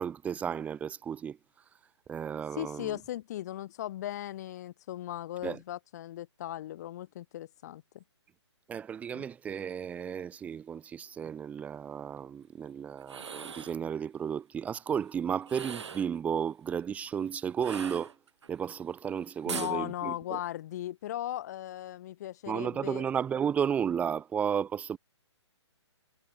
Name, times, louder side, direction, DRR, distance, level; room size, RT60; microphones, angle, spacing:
voice 1, 0.0-1.4 2.1-3.0 5.4-5.6 8.7-18.2 18.5-20.4 22.5-25.0, right 8 dB, 10° right, 1.0 m, -33 dB
voice 2, 2.6-8.0 9.1-9.2 19.5-23.0, left 13 dB, 35° left, 0.8 m, -37 dB
sound 1, 13.0-13.8 15.4-16.2 17.6-18.5 19.5-19.8, right 6 dB, 70° right, 2.0 m, -40 dB
hypercardioid pair, 150°, 15 cm